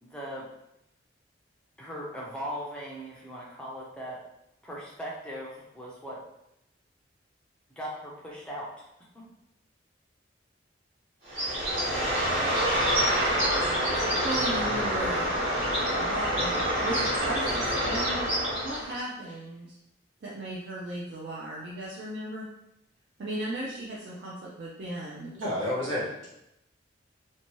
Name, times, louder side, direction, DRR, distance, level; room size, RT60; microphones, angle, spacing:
voice 1, 0.0-0.5 1.8-4.2 4.6-6.2 7.8-8.8 9.1-9.3, equal, 5° left, -5 dB, 0.4 m, -39 dB
Bird, 11.3-19.0, equal, 35° right, 1.2 m, -27 dB
voice 2, 13.8-15.3 16.0-18.3 18.6-19.8 20.2-22.5 23.2-25.3, right 1 dB, 55° right, -6 dB, 0.4 m, -36 dB
voice 3, 25.3-26.3, left 1 dB, 85° right, -6 dB, 1.1 m, -30 dB
2.7 x 2.2 x 3.0 m, 0.82 s
head